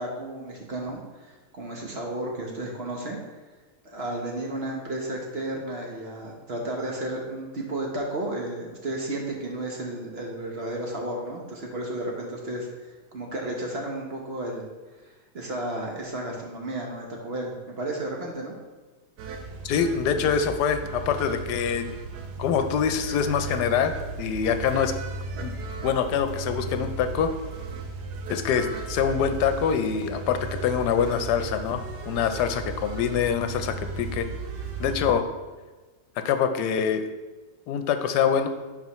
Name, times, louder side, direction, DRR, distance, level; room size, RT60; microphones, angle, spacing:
voice 1, 0.0-3.2 3.8-14.7 15.0-18.5, right 1 dB, 45° right, 0 dB, 1.1 m, -33 dB
sound 1, 19.2-35.1, right 4 dB, 80° right, 1.3 m, -35 dB
voice 2, 19.6-21.9 22.4-24.9 25.4-25.5 25.8-27.3 28.3-34.3 34.8-35.3 36.2-37.1 37.7-38.5, left 7 dB, 85° left, 8 dB, 1.2 m, -25 dB
11.0 x 4.4 x 3.0 m, 1.3 s
omnidirectional pair, 1.7 m